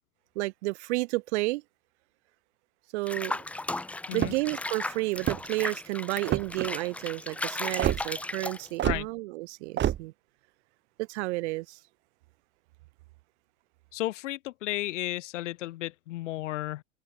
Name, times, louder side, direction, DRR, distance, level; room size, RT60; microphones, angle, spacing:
voice 1, 0.3-1.6 2.9-3.4 4.1-10.1 11.0-11.8, right 22 dB, 65° right, 1.6 m, -31 dB
Water / Bathtub (filling or washing), 3.1-9.0, left 2 dB, 5° left, 0.5 m, -36 dB
sound 1, 4.1-4.6 5.1-5.6 6.2-6.7 7.8-8.0 8.8-9.0 9.8-10.0, right 11 dB, 30° right, 2.4 m, -27 dB
voice 2, 13.9-16.8, left 16 dB, 80° left, 5.8 m, -33 dB
supercardioid pair, 130°, 36 cm